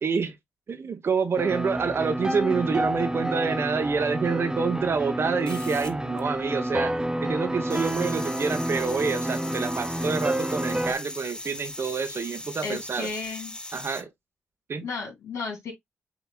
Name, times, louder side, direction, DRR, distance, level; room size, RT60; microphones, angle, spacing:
voice 1, 0.0-0.4 0.7-13.1 13.7-14.1 14.7-14.9, right 5 dB, 55° right, 1.1 m, -27 dB
sound 1, 1.4-10.9, right 1 dB, 15° right, 0.7 m, -29 dB
sound 2, 5.4-6.7 7.0-14.0, left 1 dB, 15° left, 0.8 m, -39 dB
voice 2, 12.6-13.5 14.8-15.7, left 4 dB, 70° left, 2.7 m, -33 dB
7.1 x 3.0 x 2.3 m
supercardioid pair, 45°, 5 cm